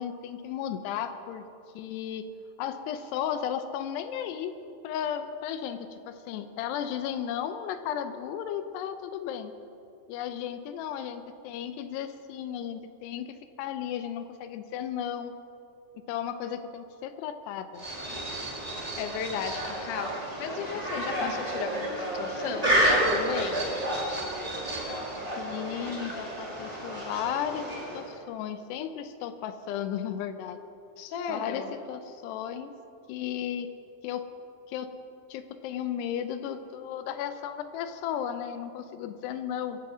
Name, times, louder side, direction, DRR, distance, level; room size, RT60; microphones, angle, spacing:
voice 1, 0.0-1.4 1.8-2.2 2.6-4.6 4.8-9.5 10.1-15.3 16.0-17.8 21.0-21.4 25.4-30.6 31.3-32.7 33.1-33.7 34.0-34.3 34.7-34.9 35.3-39.8, left 9 dB, 85° left, 9 dB, 2.8 m, -34 dB
sound 1, 17.8-28.2, right 1 dB, 30° right, 0.6 m, -30 dB
voice 2, 19.0-23.7 31.0-31.7, left 6 dB, 65° left, 5 dB, 2.1 m, -35 dB
23.0 x 7.8 x 6.1 m, 2.7 s
omnidirectional pair, 4.8 m